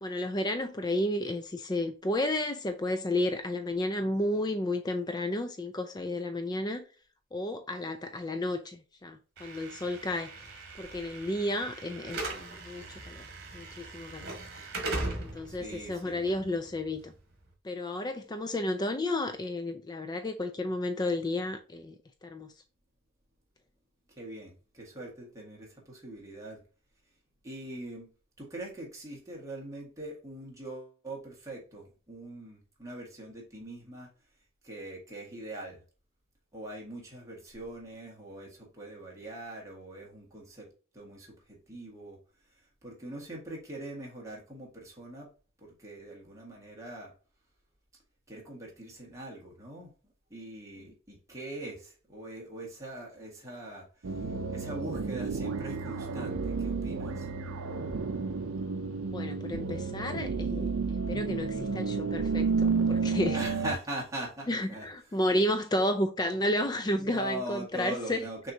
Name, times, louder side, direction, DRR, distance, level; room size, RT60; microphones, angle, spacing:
voice 1, 0.0-6.8 7.3-10.3 10.8-13.2 13.5-14.3 15.2-17.1 17.6-21.9 22.2-22.5 59.1-60.7 61.1-63.4 64.5-68.2, left 1 dB, 20° left, 0.4 m, -32 dB
Slam / Alarm, 9.4-17.4, right 2 dB, 50° right, 1.5 m, -40 dB
voice 2, 15.5-16.4 24.1-26.6 27.4-28.1 28.4-34.1 34.6-35.8 36.5-40.7 40.9-42.2 42.8-45.3 45.6-47.1 48.3-49.9 50.3-57.3 63.3-65.2 66.9-68.5, right 1 dB, 15° right, 1.6 m, -42 dB
sound 1, 54.0-63.7, right 4 dB, 75° right, 0.5 m, -31 dB
6.2 x 3.0 x 2.7 m
head